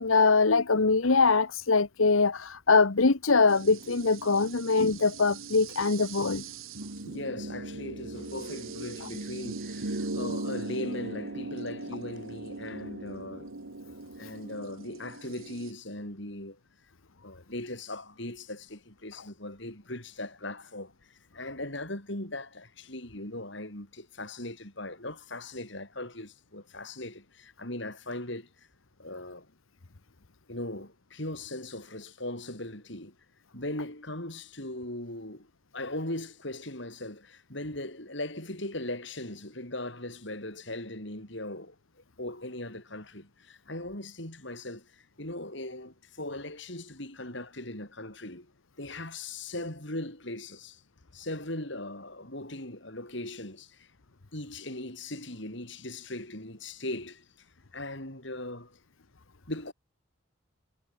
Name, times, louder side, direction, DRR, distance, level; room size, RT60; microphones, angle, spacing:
voice 1, 0.0-6.4 9.0-9.1 19.2-19.3, left 4 dB, 80° left, 1.1 m, -23 dB
sound 1, 3.5-15.7, right 2 dB, 85° right, 1.8 m, -39 dB
voice 2, 7.0-13.5 14.2-16.6 17.2-28.5 29.0-29.5 30.5-33.1 33.5-41.7 42.2-48.5 48.8-50.8 51.1-53.9 54.3-57.3 57.7-58.8 59.5-59.7, left 1 dB, 60° left, 6.0 m, -39 dB
head